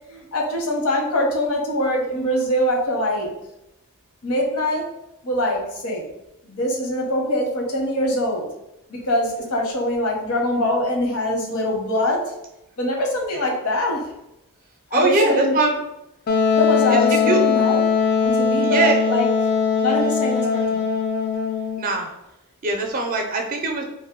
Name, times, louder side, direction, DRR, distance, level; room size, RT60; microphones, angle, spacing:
voice 1, 0.1-3.3 4.2-4.9 5.2-6.0 6.4-8.5 8.9-12.3 12.8-14.1 14.9-15.6 16.5-17.8 18.2-19.3 19.8-20.8, left 1 dB, 80° left, 0 dB, 0.8 m, -23 dB
voice 2, 14.9-15.8 16.9-17.4 18.6-19.0 21.8-22.1 22.6-23.8, right 3 dB, 40° right, 2 dB, 0.4 m, -22 dB
Wind instrument woodwind instrument, 16.3-21.8, left 5 dB, 45° left, 0.4 m, -20 dB
2.6 x 2.1 x 3.5 m, 0.88 s
head